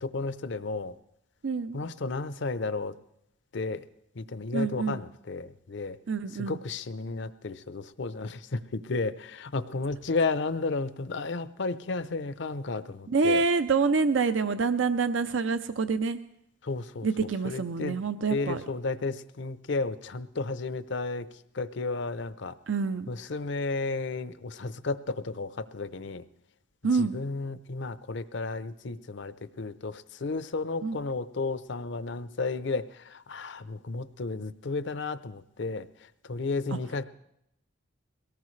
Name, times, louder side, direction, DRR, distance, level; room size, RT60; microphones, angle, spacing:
voice 1, 0.0-0.9 1.7-2.9 3.5-3.8 4.2-6.0 6.4-13.4 16.6-17.1 17.4-18.0 18.3-21.3 21.5-22.5 23.1-26.2 27.0-32.8 33.1-35.9 36.3-37.0, left 3 dB, 65° left, 14 dB, 0.7 m, -33 dB
voice 2, 1.4-1.8 4.5-5.0 6.1-6.6 13.1-16.2 17.0-18.6 22.7-23.1 26.8-27.2 30.8-31.0, right 4 dB, 80° right, 10 dB, 0.6 m, -27 dB
22.5 x 18.0 x 3.2 m, 0.78 s
head